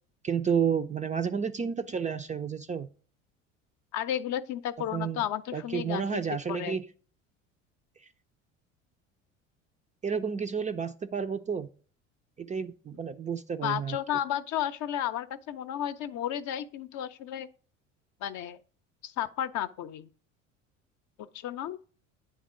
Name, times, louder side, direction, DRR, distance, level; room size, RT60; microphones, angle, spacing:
voice 1, 0.2-2.9 4.9-5.2 5.5-6.9 10.0-11.7 12.4-14.0, right 6 dB, 20° right, 0.4 m, -31 dB
voice 2, 3.9-6.2 6.5-6.8 13.6-17.5 18.2-18.6 19.0-20.1 21.2-21.8, left 11 dB, 50° left, 0.7 m, -33 dB
9.3 x 3.6 x 4.8 m
hypercardioid pair, 70°, 39 cm